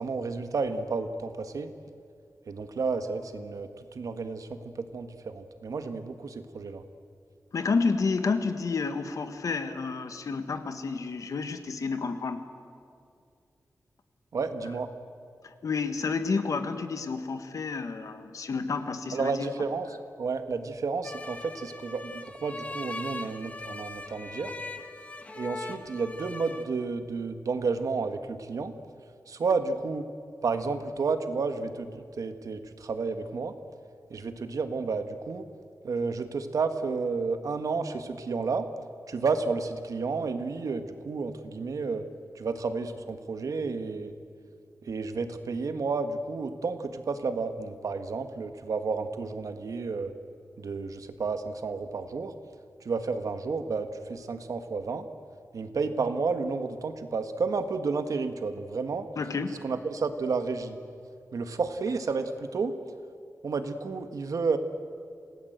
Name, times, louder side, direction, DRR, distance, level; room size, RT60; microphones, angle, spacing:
voice 1, 0.0-1.7 2.5-6.8 14.3-14.9 19.1-19.9 20.2-24.5 25.3-28.7 29.3-30.1 30.4-33.5 34.1-35.4 35.8-38.6 39.1-42.1 42.3-44.1 44.8-50.1 50.6-52.3 52.8-55.1 55.5-59.1 59.6-60.8 61.3-62.8 63.4-64.6, right 4 dB, 70° right, 8 dB, 1.5 m, -31 dB
voice 2, 7.5-12.5 15.4-19.5 59.2-59.6, left 4 dB, 65° left, 8 dB, 1.6 m, -30 dB
sound 1, 21.0-26.6, left 2 dB, 20° left, 1.3 m, -40 dB
27.5 x 18.0 x 8.0 m, 2.4 s
wide cardioid pair, 160°, 6 cm